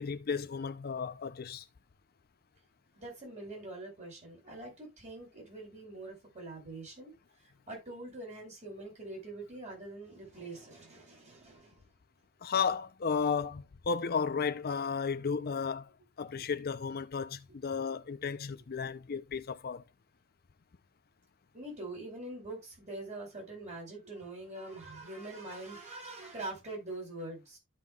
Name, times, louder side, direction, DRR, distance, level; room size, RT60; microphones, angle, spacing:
voice 1, 0.0-1.6 12.4-15.9 16.2-19.8, left 6 dB, 45° left, 0.5 m, -33 dB
voice 2, 2.9-7.1 7.7-11.9 17.9-18.0 21.5-27.6, right 2 dB, 35° right, 4.7 m, -44 dB
13.5 x 5.6 x 2.3 m
head